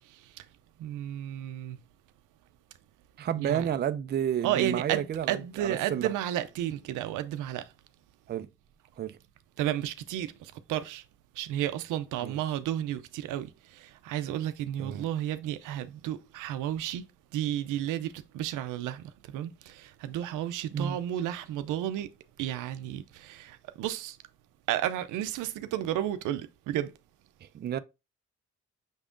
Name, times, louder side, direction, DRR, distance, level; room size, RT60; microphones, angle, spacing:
voice 1, 0.1-0.4 0.8-1.8 3.4-3.7 4.4-7.7 9.6-11.0 11.4-17.1 17.3-22.1 22.4-24.2 24.7-26.9, right 12 dB, 90° right, 0.5 m, -32 dB
voice 2, 3.2-6.1 8.3-8.5 9.0-9.2 12.2-12.4 14.8-15.1 20.7-21.0 27.4-27.8, right 9 dB, 35° right, 0.4 m, -31 dB
6.1 x 3.5 x 2.5 m
cardioid pair, 90°, 30 cm